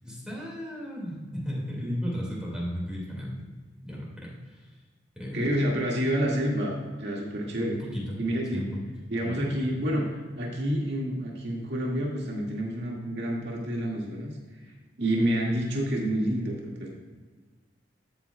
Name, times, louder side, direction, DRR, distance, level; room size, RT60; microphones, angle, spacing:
voice 1, 0.0-3.4 3.8-4.6 5.2-5.8 7.7-8.2 8.5-8.8 9.2-9.8, equal, 5° right, -5 dB, 2.2 m, -35 dB
voice 2, 5.3-7.8 8.2-8.7 9.1-10.1 10.4-14.3 15.0-16.9, equal, 65° right, -2 dB, 2.0 m, -28 dB
13.0 x 8.8 x 2.3 m, 1.4 s
head